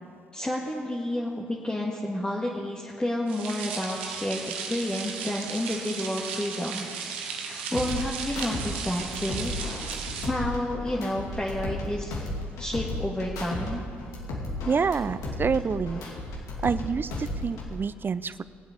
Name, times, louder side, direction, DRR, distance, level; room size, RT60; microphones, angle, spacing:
voice 1, 0.3-6.9 7.4-9.5 10.2-12.1 12.6-13.8, left 1 dB, 15° left, -4 dB, 1.8 m, -30 dB
sound 1, 3.3-10.3, right 6 dB, 90° right, 1.0 m, -36 dB
sound 2, 7.7-8.7 9.0-11.9 12.1-13.7 14.0-16.8 17.1-17.7, left 2 dB, 70° left, 2.5 m, -34 dB
voice 2, 14.7-16.0 16.6-18.4, right 5 dB, 35° right, 16 dB, 0.5 m, -27 dB
19.0 x 8.0 x 5.3 m, 2.4 s
hypercardioid pair, 50°, 6 cm